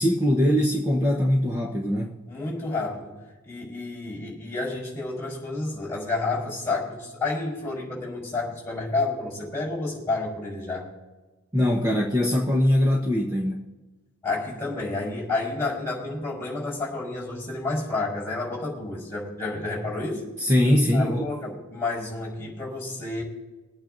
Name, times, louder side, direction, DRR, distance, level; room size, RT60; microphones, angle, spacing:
voice 1, 0.0-2.2 11.5-13.6 20.4-21.2, left 1 dB, 15° right, -1 dB, 1.0 m, -22 dB
voice 2, 2.3-3.2 3.4-10.9 14.2-20.3 20.9-23.2, left 3 dB, 10° left, -6 dB, 4.6 m, -30 dB
23.5 x 9.0 x 2.6 m, 1.2 s
head